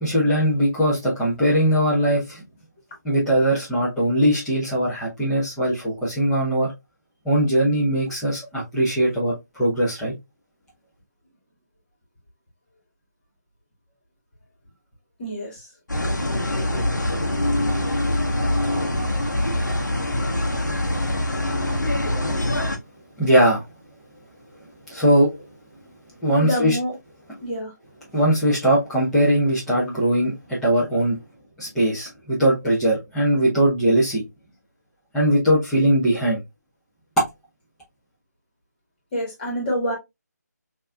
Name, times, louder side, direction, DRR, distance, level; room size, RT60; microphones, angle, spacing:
voice 1, 0.0-2.4 3.0-6.7 7.2-10.1 23.2-23.6 24.9-25.4 26.2-26.8 28.1-31.2 31.6-34.2 35.1-36.4, right 1 dB, 5° left, 1.1 m, -20 dB
voice 2, 15.2-15.6 26.4-26.9 27.4-27.7 39.1-39.9, equal, 30° left, 2.3 m, -26 dB
sound 1, 15.9-22.8, left 1 dB, 85° left, 1.1 m, -24 dB
4.5 x 3.0 x 2.5 m
figure-of-eight pair, 160°, 10 cm